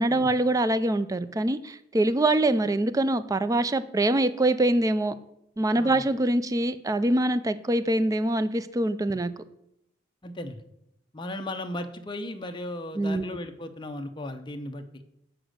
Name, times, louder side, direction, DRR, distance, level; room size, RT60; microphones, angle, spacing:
voice 1, 0.0-5.1 5.6-9.3 13.0-13.2, right 1 dB, 20° right, 13 dB, 0.4 m, -24 dB
voice 2, 10.2-10.6 11.1-15.0, left 1 dB, 25° left, 6 dB, 0.7 m, -36 dB
7.9 x 5.0 x 6.4 m, 0.79 s
head